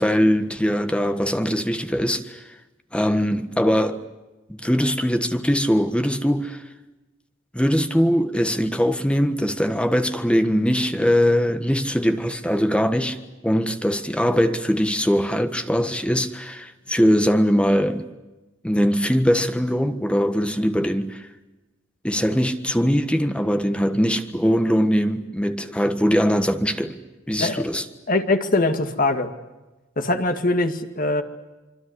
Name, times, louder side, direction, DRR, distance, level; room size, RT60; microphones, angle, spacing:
voice 1, 0.0-2.4 2.9-4.0 4.5-6.6 7.5-13.2 13.4-18.0 18.6-21.3 22.0-27.0 27.3-27.8, equal, 5° left, 1.5 m, -21 dB
voice 2, 28.1-29.3 30.0-31.2, left 2 dB, 45° left, 2.2 m, -22 dB
26.5 x 24.5 x 8.1 m
head